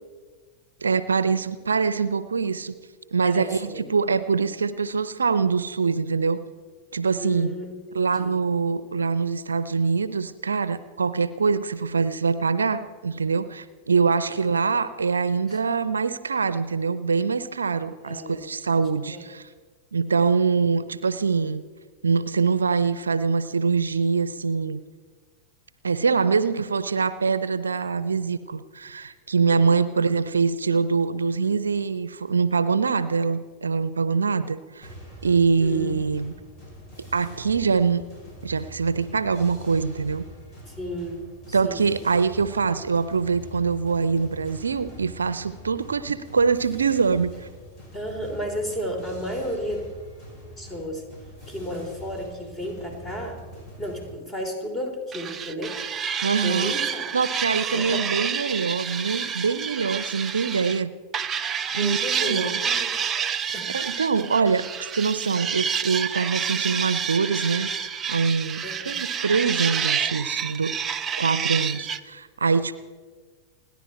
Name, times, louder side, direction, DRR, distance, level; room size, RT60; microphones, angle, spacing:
voice 1, 0.8-2.7 3.1-6.4 6.9-7.5 7.9-19.5 19.9-21.6 22.0-24.8 25.8-34.9 35.2-36.3 37.1-38.0 38.4-40.2 41.5-47.5 56.2-56.8 57.1-60.9 61.7-62.6 63.3-64.7 64.9-70.8 71.2-72.7, right 5 dB, 75° right, 15 dB, 0.6 m, -24 dB
voice 2, 3.2-3.9 7.2-8.4 15.5-15.6 18.0-18.5 19.1-19.3 29.5-29.6 35.6-35.9 36.3-36.4 40.7-41.9 47.9-49.8 50.6-51.0 51.5-53.4 53.8-55.8 56.4-57.0 57.7-58.1 61.7-63.0 63.5-63.7 68.6-69.0, equal, 20° left, 3 dB, 3.9 m, -33 dB
sound 1, 34.8-54.1, equal, 35° left, 6.6 m, -44 dB
sound 2, 55.1-60.8 61.1-72.0, right 7 dB, 20° right, 0.6 m, -29 dB
29.5 x 10.5 x 4.4 m, 1.5 s
figure-of-eight pair, 90°, 0 cm